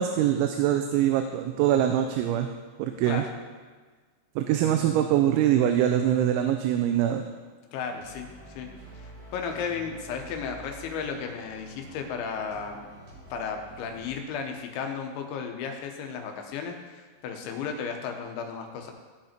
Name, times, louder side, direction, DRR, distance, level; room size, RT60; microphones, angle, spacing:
voice 1, 0.0-2.5 2.8-3.2 4.4-7.2, right 11 dB, 85° right, 6 dB, 2.9 m, -23 dB
voice 2, 7.7-8.3 8.5-8.7 8.9-12.9 13.3-18.9, left 6 dB, 80° left, 3 dB, 3.3 m, -34 dB
sound 1, 7.8-14.1, right 1 dB, 45° right, 3.1 m, -48 dB
16.0 x 5.4 x 4.4 m, 1.4 s
omnidirectional pair, 5.4 m